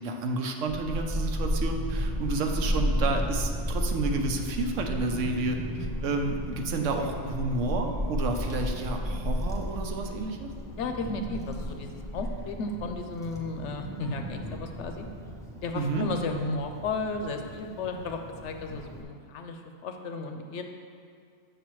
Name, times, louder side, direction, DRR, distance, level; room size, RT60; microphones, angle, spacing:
voice 1, 0.0-5.6 6.0-10.5 15.7-16.1, right 3 dB, 75° right, 3 dB, 1.0 m, -30 dB
Child speech kid speaking / Wind, 0.7-19.0, equal, 5° left, 0.3 m, -33 dB
voice 2, 10.8-15.1 15.6-20.6, left 3 dB, 70° left, 5 dB, 0.9 m, -34 dB
7.5 x 6.7 x 3.1 m, 2.3 s
omnidirectional pair, 1.3 m